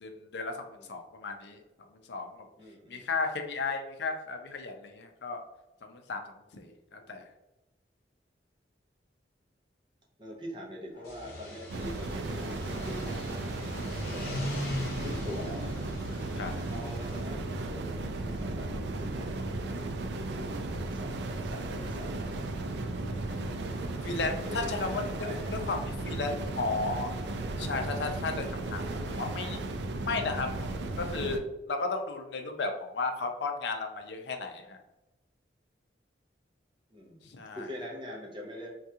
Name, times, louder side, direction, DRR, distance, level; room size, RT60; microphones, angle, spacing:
voice 1, 0.0-1.6 2.1-2.4 2.9-5.4 5.8-6.2 6.5-7.2 16.4-16.5 23.2-23.7 24.0-24.9 25.7-25.8 26.0-27.1 27.6-29.6 30.1-30.7 31.0-34.8 37.2-37.7, left 3 dB, 70° left, 5 dB, 0.4 m, -34 dB
voice 2, 2.6-3.1 10.2-13.6 14.1-14.6 15.0-15.9 16.7-17.9 18.2-19.7 20.9-22.5 24.5-25.5 36.9-37.2 37.5-38.7, left 1 dB, 25° right, -1 dB, 0.6 m, -44 dB
sound 1, 11.0-17.3, left 1 dB, 50° left, 0.8 m, -40 dB
sound 2, 11.7-31.4, right 2 dB, 70° right, 0.3 m, -35 dB
3.5 x 2.3 x 2.7 m, 0.97 s
head